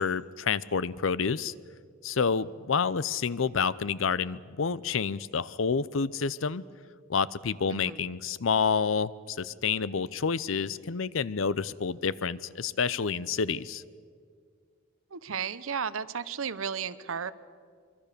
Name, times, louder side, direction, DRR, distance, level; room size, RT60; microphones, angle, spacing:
voice 1, 0.0-1.5 2.0-6.6 7.1-13.8, left 5 dB, 75° left, 18 dB, 0.6 m, -29 dB
voice 2, 7.7-8.0 15.1-17.3, right 6 dB, 85° right, 15 dB, 0.9 m, -34 dB
24.5 x 24.0 x 6.8 m, 2.1 s
head